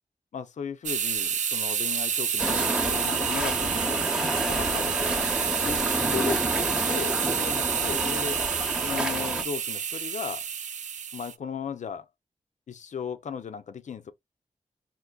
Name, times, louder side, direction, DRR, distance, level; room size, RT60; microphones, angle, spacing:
voice 1, 0.3-4.0 4.4-5.0 5.6-5.8 6.1-8.4 8.8-10.5 11.1-12.1 12.7-14.1, left 7 dB, 75° left, 0.5 m, -36 dB
sound 1, 0.8-11.3, right 8 dB, 75° right, 0.4 m, -29 dB
sound 2, 2.4-9.4, right 1 dB, 5° right, 0.7 m, -29 dB
3.8 x 2.5 x 2.3 m
wide cardioid pair, 75°, 13 cm